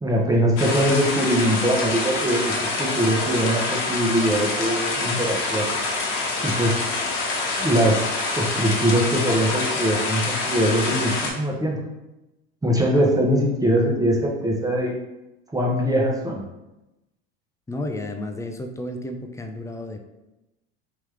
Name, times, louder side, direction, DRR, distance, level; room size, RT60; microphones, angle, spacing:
voice 1, 0.0-5.7 6.4-6.8 7.6-8.0 8.4-11.8 12.6-14.9 15.5-16.4, equal, 10° right, -1 dB, 0.8 m, -22 dB
sound 1, 0.6-11.3, left 3 dB, 65° left, 1.0 m, -26 dB
voice 2, 17.7-20.0, left 1 dB, 10° left, 5 dB, 0.4 m, -32 dB
3.5 x 3.0 x 3.3 m, 0.97 s
hypercardioid pair, 80°, 31 cm